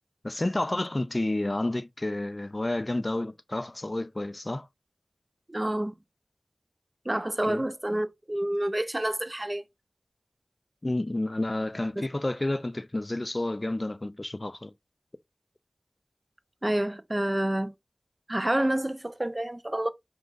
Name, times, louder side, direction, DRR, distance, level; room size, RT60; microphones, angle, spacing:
voice 1, 0.2-4.7 7.4-7.7 10.8-14.7, left 1 dB, 40° left, 0.4 m, -30 dB
voice 2, 5.5-5.9 7.1-9.6 12.0-12.1 16.6-17.7 18.3-19.9, right 1 dB, 30° right, 0.6 m, -28 dB
6.0 x 2.3 x 3.9 m
wide cardioid pair, 40°, 0 cm